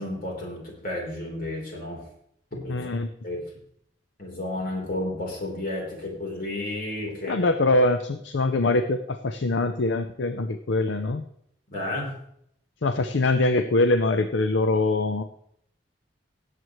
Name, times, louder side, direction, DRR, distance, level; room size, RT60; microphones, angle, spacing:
voice 1, 0.0-2.0 2.5-2.9 3.2-3.4 4.2-7.5 11.7-12.1, left 1 dB, 50° left, -1 dB, 3.7 m, -32 dB
voice 2, 2.7-3.1 7.3-11.2 12.8-15.2, left 2 dB, 70° left, 9 dB, 0.6 m, -23 dB
17.5 x 7.9 x 3.1 m, 0.71 s
head